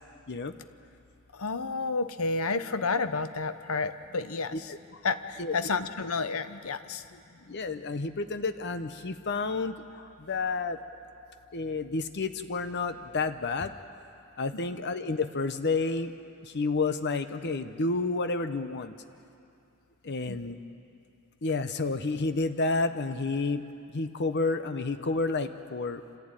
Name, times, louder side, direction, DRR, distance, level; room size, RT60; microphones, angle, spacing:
voice 1, 1.3-4.7 5.0-7.2 20.3-20.4, left 4 dB, 80° left, 11 dB, 0.9 m, -31 dB
voice 2, 4.5-5.0 5.4-5.5 7.4-10.8 11.5-13.7 14.4-16.1 16.4-18.9 20.0-20.6 21.4-23.6 23.9-26.0, left 3 dB, 55° left, 9 dB, 0.8 m, -30 dB
27.0 x 15.5 x 9.0 m, 2.6 s
head